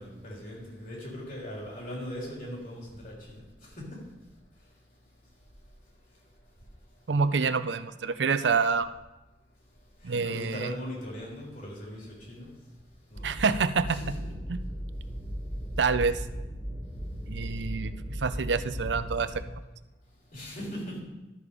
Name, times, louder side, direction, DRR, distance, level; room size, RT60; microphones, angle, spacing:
voice 1, 0.0-4.1 4.6-4.7 10.0-12.6 13.1-13.4 13.9-14.4 16.9-17.0 20.3-21.0, equal, 50° left, -3 dB, 3.7 m, -40 dB
voice 2, 7.1-8.9 10.0-10.7 13.2-14.0 14.5-14.6 15.8-16.2 17.3-19.4, right 5 dB, 85° right, 12 dB, 0.6 m, -27 dB
sound 1, 13.1-19.4, equal, 10° left, 1.8 m, -37 dB
12.0 x 6.8 x 5.0 m, 1.0 s
head